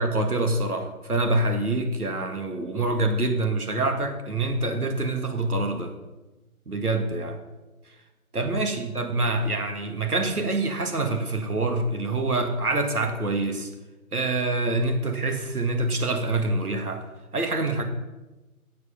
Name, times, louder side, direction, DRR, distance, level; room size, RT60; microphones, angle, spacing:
voice 1, 0.0-5.9 6.7-7.4 7.9-8.0 8.3-13.7 14.1-17.0 17.3-17.8, right 2 dB, 80° right, 5 dB, 2.1 m, -26 dB
13.0 x 8.3 x 5.2 m, 1.1 s
figure-of-eight pair, 180°, 44 cm